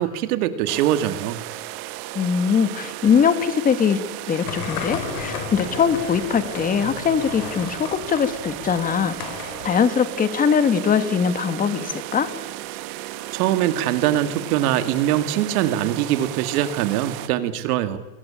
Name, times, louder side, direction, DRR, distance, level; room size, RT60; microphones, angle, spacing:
voice 1, 0.0-1.4 13.3-18.0, right 12 dB, 65° right, 11 dB, 2.2 m, -22 dB
sound 1, 0.7-17.3, right 16 dB, 45° right, 1.6 m, -35 dB
voice 2, 2.1-4.0 4.3-9.2 9.6-12.3, left 7 dB, 15° left, 11 dB, 1.6 m, -21 dB
sound 2, 4.4-9.8, left 7 dB, 65° left, 4.8 m, -34 dB
27.5 x 22.5 x 8.9 m, 1.2 s
supercardioid pair, 160°, 49 cm